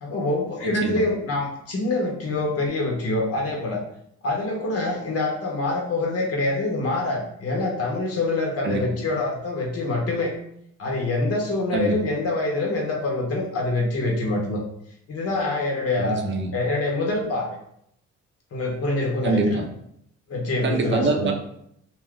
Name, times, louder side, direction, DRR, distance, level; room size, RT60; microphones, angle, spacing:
voice 1, 0.0-3.8 4.2-10.3 10.8-14.6 15.1-16.2 16.5-17.6 18.5-19.6 20.3-21.3, left 2 dB, 50° left, 0 dB, 0.8 m, -25 dB
voice 2, 0.6-1.0 8.6-8.8 11.7-12.0 16.0-16.5 19.2-19.7 20.6-21.3, right 3 dB, 40° right, 4 dB, 0.6 m, -24 dB
2.3 x 2.1 x 3.6 m, 0.72 s
cardioid pair, 90°, 30 cm